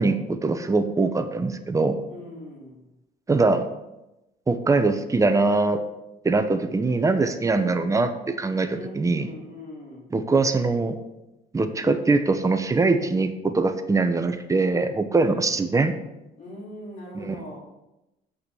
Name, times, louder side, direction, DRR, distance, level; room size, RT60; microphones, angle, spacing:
voice 1, 0.0-2.0 3.3-3.7 4.5-5.8 6.2-9.3 10.1-11.0 11.5-15.9 17.1-17.4, right 3 dB, 20° right, 8 dB, 0.9 m, -22 dB
voice 2, 2.0-2.9 7.3-7.9 8.7-10.1 15.1-15.5 16.4-17.6, left 1 dB, 50° left, -2 dB, 3.3 m, -41 dB
8.0 x 5.8 x 6.8 m, 0.96 s
cardioid pair, 110°, 17 cm